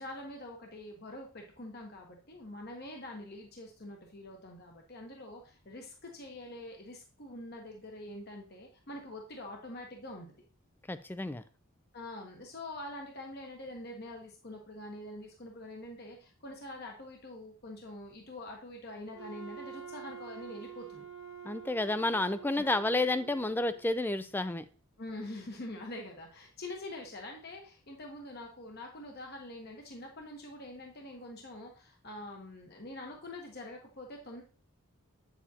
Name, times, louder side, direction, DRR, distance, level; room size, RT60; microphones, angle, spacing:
voice 1, 0.0-10.4 11.9-21.1 22.6-22.7 25.0-34.4, left 1 dB, 45° left, 1 dB, 1.1 m, -45 dB
voice 2, 10.9-11.4 21.4-24.6, left 2 dB, 10° left, 13 dB, 0.3 m, -30 dB
Wind instrument woodwind instrument, 19.1-23.9, right 8 dB, 60° right, 0.7 m, -47 dB
8.6 x 7.1 x 2.8 m, 0.39 s
head